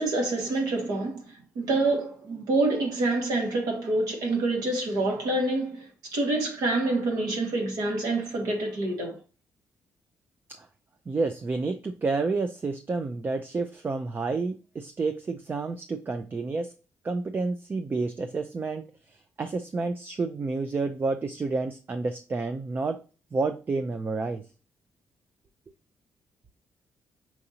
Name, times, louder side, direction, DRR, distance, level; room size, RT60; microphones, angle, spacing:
voice 1, 0.0-9.2, right 2 dB, 80° right, 1.7 m, -27 dB
voice 2, 11.1-16.7 17.0-23.0 23.3-24.4, right 3 dB, 35° right, 0.4 m, -30 dB
5.7 x 2.6 x 2.9 m
cardioid pair, 85°, 6 cm